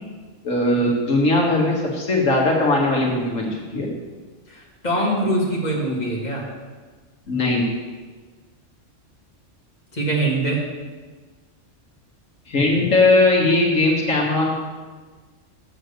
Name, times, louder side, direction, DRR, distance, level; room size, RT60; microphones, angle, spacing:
voice 1, 0.4-3.9 7.3-7.7 12.5-14.5, left 2 dB, 90° left, -2 dB, 2.1 m, -19 dB
voice 2, 4.5-6.4 9.9-10.6, right 1 dB, 35° left, -4 dB, 2.2 m, -23 dB
8.0 x 7.8 x 6.9 m, 1.4 s
omnidirectional pair, 1.3 m